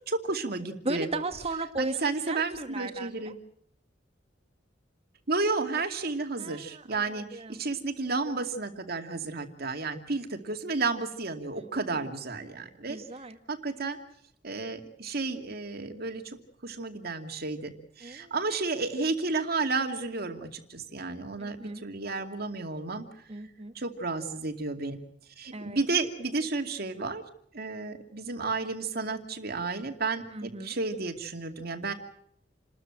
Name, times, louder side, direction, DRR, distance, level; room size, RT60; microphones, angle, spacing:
voice 1, 0.1-1.1 1.8-3.4 5.3-13.0 13.5-14.0 14.4-16.2 16.6-17.7 18.0-21.6 21.8-23.0 23.8-25.0 25.4-27.2 27.5-31.9, right 3 dB, 55° right, 6 dB, 2.5 m, -32 dB
voice 2, 0.8-3.3 6.4-7.6 11.5-12.1 12.9-13.4 18.0-18.4 21.4-21.8 23.3-23.7 25.5-25.8 30.3-30.8, right 2 dB, 35° right, 8 dB, 2.0 m, -37 dB
29.0 x 13.5 x 9.1 m, 0.70 s
head